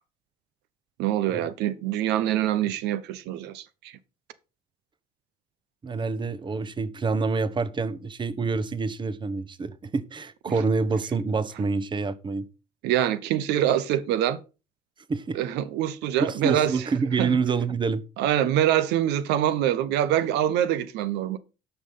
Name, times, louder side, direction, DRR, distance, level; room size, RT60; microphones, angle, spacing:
voice 1, 1.0-3.9 10.5-10.6 12.8-14.4 15.3-16.7 17.2-17.3 18.2-21.4, right 11 dB, 90° right, 0.8 m, -25 dB
voice 2, 5.8-12.5 15.1-15.4 16.2-18.0, right 4 dB, 30° right, 1.0 m, -27 dB
9.9 x 5.9 x 5.4 m
cardioid pair, 110°, 17 cm